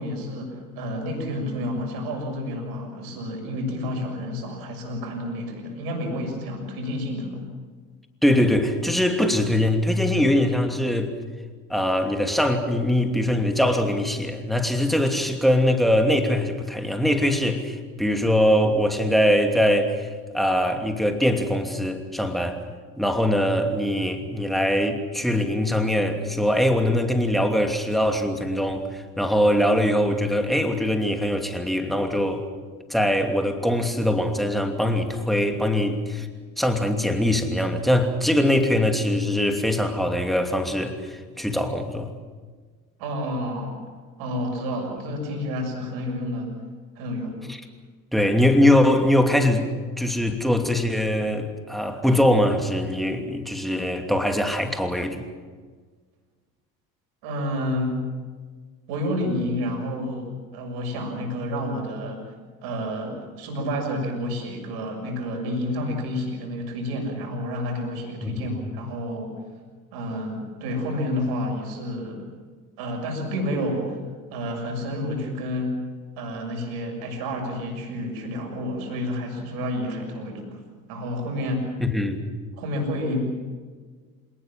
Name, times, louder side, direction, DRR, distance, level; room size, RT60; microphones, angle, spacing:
voice 1, 0.0-7.5 43.0-43.8 44.2-46.5 47.0-47.4 57.2-58.0 58.9-62.2 62.6-69.4 69.9-72.2 72.8-74.0 74.3-75.8 76.2-80.6 80.9-81.7 82.6-83.4, left 1 dB, 55° right, 3 dB, 6.7 m, -29 dB
voice 2, 8.2-11.1 11.7-20.1 20.3-22.6 23.0-32.5 32.9-36.3 36.6-42.1 47.5-47.6 48.1-49.7 50.0-55.3 68.2-68.4 81.8-82.2, left 1 dB, ahead, 5 dB, 2.8 m, -22 dB
27.5 x 19.0 x 7.6 m, 1.5 s
figure-of-eight pair, 60°, 44 cm